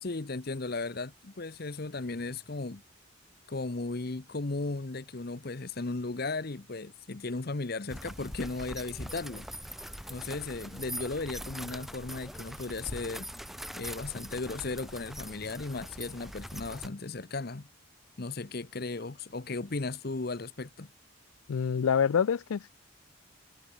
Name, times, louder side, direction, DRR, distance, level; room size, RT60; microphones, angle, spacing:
voice 1, 0.0-2.8 3.5-9.5 10.1-13.3 13.8-17.7 18.2-20.9, left 3 dB, 50° left, 0.8 m, -36 dB
sound 1, 7.9-16.9, equal, ahead, 0.7 m, -42 dB
sound 2, 11.6-15.9, right 1 dB, 75° right, 3.5 m, -58 dB
voice 2, 21.5-22.7, left 7 dB, 90° left, 0.4 m, -26 dB
head